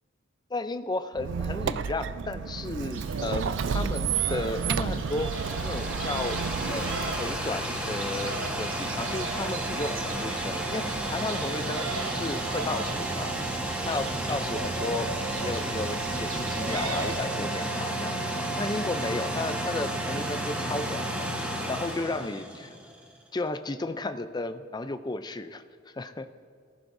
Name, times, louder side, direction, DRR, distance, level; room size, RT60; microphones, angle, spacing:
voice 1, 0.5-6.4 6.7-15.1 15.4-22.7 23.3-26.3, left 2 dB, 20° left, 10 dB, 0.5 m, -34 dB
Squeak, 1.1-7.6, right 6 dB, 65° right, 0.4 m, -31 dB
sound 1, 2.9-17.2, right 3 dB, 85° right, 1.2 m, -38 dB
sound 2, 4.8-23.0, right 1 dB, 5° right, 1.4 m, -32 dB
19.0 x 15.0 x 2.7 m, 2.1 s
head